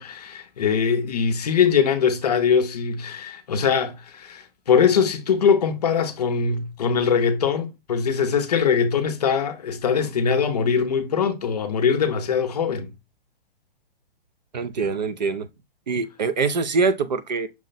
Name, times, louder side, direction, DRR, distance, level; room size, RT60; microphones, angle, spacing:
voice 1, 0.0-12.9, left 6 dB, 40° left, 0.6 m, -22 dB
voice 2, 14.5-15.5 15.9-17.5, right 4 dB, 50° right, 0.4 m, -24 dB
6.0 x 2.1 x 3.9 m
hypercardioid pair, 180°, 30 cm